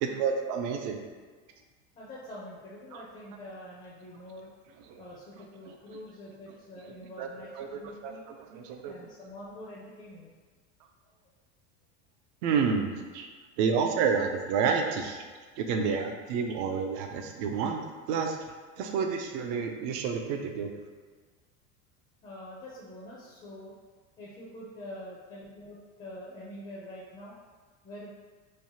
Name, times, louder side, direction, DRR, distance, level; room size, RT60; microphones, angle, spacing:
voice 1, 0.0-1.0 2.9-3.0 4.9-5.0 7.2-7.3 7.6-8.9 12.4-13.3 13.6-15.2 15.6-18.4 18.8-20.7, right 6 dB, 55° right, 4 dB, 0.5 m, -29 dB
voice 2, 1.9-4.5 5.0-8.2 8.8-10.3 22.2-23.7 24.2-27.3 27.8-28.1, left 1 dB, 20° left, -6 dB, 0.5 m, -45 dB
3.2 x 2.0 x 2.7 m, 1.5 s
supercardioid pair, 110°, 35 cm